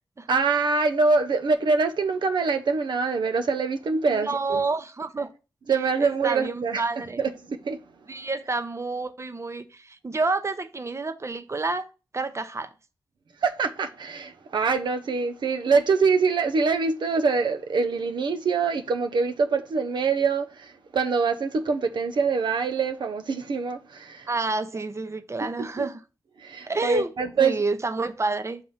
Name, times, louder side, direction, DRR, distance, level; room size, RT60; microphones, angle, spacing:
voice 1, 0.3-4.6 5.7-6.8 7.2-7.8 13.4-24.3 25.6-25.7 26.4-27.6, right 4 dB, 70° right, 0.6 m, -24 dB
voice 2, 4.1-5.3 5.7-7.2 8.1-11.9 12.1-12.7 24.3-26.0 26.7-27.1 27.4-28.6, right 3 dB, 35° right, 0.8 m, -29 dB
7.4 x 3.0 x 5.5 m
cardioid pair, 45°, 8 cm